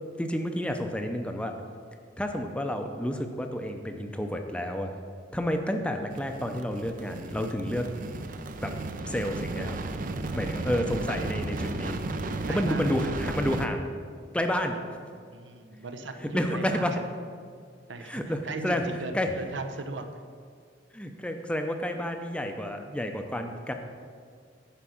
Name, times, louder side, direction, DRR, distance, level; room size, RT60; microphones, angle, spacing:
voice 1, 0.2-1.5 2.2-4.9 5.3-7.9 8.6-8.7 9.1-9.8 10.3-12.0 12.5-13.9 14.3-14.8 16.2-17.0 18.0-18.9 19.1-19.3 20.9-23.7, equal, 5° left, 5 dB, 0.5 m, -30 dB
sound 1, 6.1-13.7, right 2 dB, 45° right, 0.5 m, -34 dB
voice 2, 12.5-12.9 15.3-16.9 17.9-20.1, right 3 dB, 80° right, 7 dB, 0.7 m, -37 dB
9.9 x 5.1 x 5.9 m, 2.1 s
head